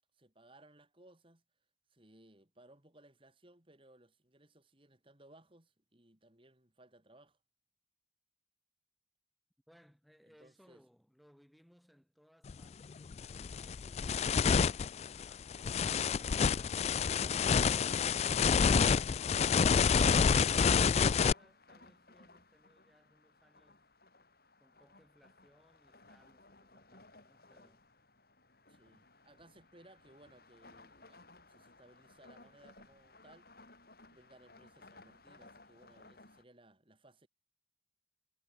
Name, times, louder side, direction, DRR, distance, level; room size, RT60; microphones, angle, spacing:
voice 1, 0.1-1.4 1.9-7.4 10.3-10.8 13.8-14.4 16.4-18.0 28.7-31.2 31.5-33.8 34.1-37.3, right 1 dB, 30° right, 3.6 m, -62 dB
voice 2, 9.7-15.5 18.4-19.4 20.2-23.9 24.6-27.9, equal, ahead, 7.0 m, -66 dB
sound 1, 12.5-12.6 13.1-21.3, left 6 dB, 35° left, 0.3 m, -28 dB
sound 2, 20.2-36.4, left 2 dB, 60° left, 7.2 m, -60 dB
head